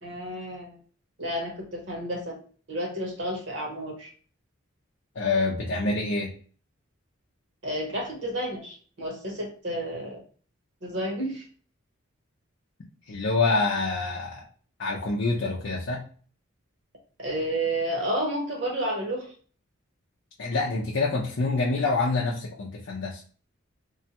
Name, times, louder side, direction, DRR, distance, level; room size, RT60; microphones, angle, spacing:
voice 1, 0.0-0.8 1.2-2.4 2.7-4.1 7.6-10.2 10.8-11.4 17.2-19.3, right 1 dB, 60° right, 0 dB, 1.1 m, -31 dB
voice 2, 5.2-6.3 13.1-14.4 14.8-16.0 20.4-23.2, left 3 dB, 60° left, -3 dB, 0.5 m, -26 dB
3.1 x 2.2 x 2.8 m, 0.42 s
head